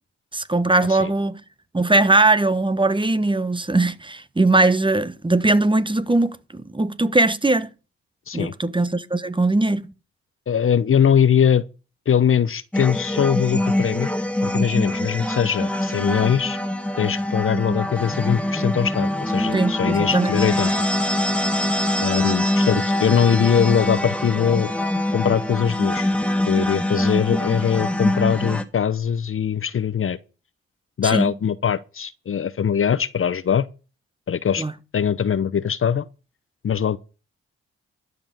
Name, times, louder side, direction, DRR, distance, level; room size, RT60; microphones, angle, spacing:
voice 1, 0.3-1.4 1.7-7.7 8.3-9.9 19.5-20.3 31.0-31.3 34.6-34.7, right 2 dB, 15° right, 1.2 m, -20 dB
voice 2, 10.5-11.7 12.1-14.1 14.4-16.6 17.0-20.7 22.0-24.7 25.1-26.1 26.5-30.2 31.0-33.7 34.3-34.6 34.9-36.1 36.6-37.0, left 8 dB, 45° left, 0.8 m, -21 dB
sound 1, 12.7-28.6, left 1 dB, 5° left, 1.7 m, -24 dB
12.5 x 5.4 x 8.8 m
supercardioid pair, 50°, 29 cm